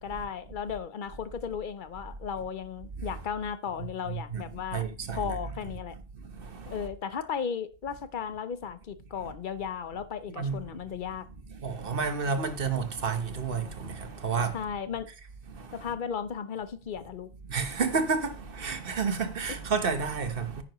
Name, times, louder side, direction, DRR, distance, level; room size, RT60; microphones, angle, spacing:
voice 1, 0.0-4.9 5.1-5.9 6.7-11.3 14.5-15.1 15.7-17.3, left 7 dB, 55° left, 0.8 m, -35 dB
voice 2, 4.0-4.4 4.7-5.4 6.2-6.9 10.4-10.8 11.5-14.6 15.5-15.9 17.4-20.6, right 5 dB, 65° right, 1.3 m, -31 dB
9.9 x 9.3 x 3.0 m
omnidirectional pair, 1.0 m